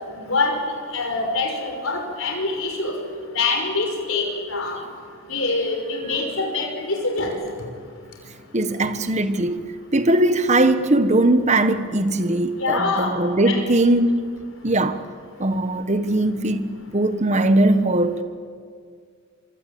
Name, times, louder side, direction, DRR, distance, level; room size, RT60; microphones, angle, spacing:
voice 1, 0.2-0.5 0.9-2.9 3.3-4.8 5.3-7.4 12.6-13.1 13.5-13.6, left 3 dB, 60° left, 5.6 m, -24 dB
voice 2, 8.5-9.6 9.9-14.1 14.6-15.0 15.4-16.7 16.9-18.2, right 1 dB, 30° right, 1.4 m, -20 dB
26.0 x 24.5 x 8.7 m
head